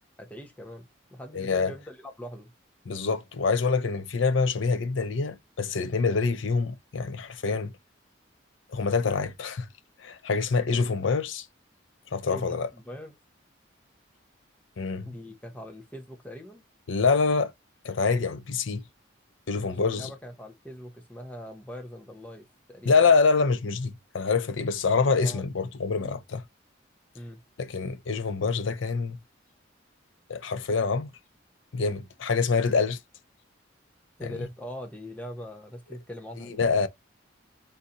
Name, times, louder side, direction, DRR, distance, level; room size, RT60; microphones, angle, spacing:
voice 1, 0.2-2.5 12.3-13.2 15.0-16.6 19.6-23.0 25.2-25.4 26.0-26.2 27.1-27.4 34.2-36.6, equal, 10° left, 0.8 m, -42 dB
voice 2, 1.3-1.7 2.9-7.7 8.7-9.7 10.0-11.5 12.1-12.7 14.8-15.2 16.9-17.5 17.8-18.8 19.5-20.1 22.8-26.4 27.6-29.2 30.3-31.1 31.7-33.0 34.2-34.4 36.5-36.9, left 4 dB, 80° left, 0.6 m, -26 dB
4.0 x 2.8 x 3.8 m
head